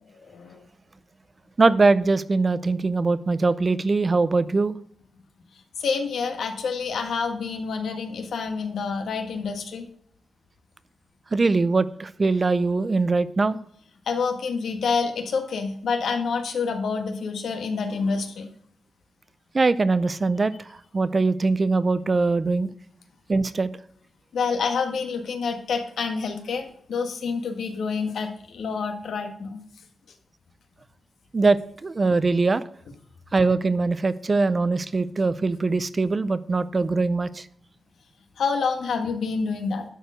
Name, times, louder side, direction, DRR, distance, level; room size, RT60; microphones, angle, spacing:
voice 1, 0.2-0.6 5.8-9.8 14.1-18.5 24.3-29.6 38.4-39.8, left 5 dB, 80° left, 5 dB, 1.6 m, -27 dB
voice 2, 1.6-4.7 11.3-13.6 19.5-20.5 20.9-22.7 23.3-23.7 31.3-32.6 33.3-37.4, right 3 dB, 30° right, 15 dB, 0.4 m, -22 dB
11.0 x 4.8 x 6.3 m, 0.65 s
wide cardioid pair, 150°, 0 cm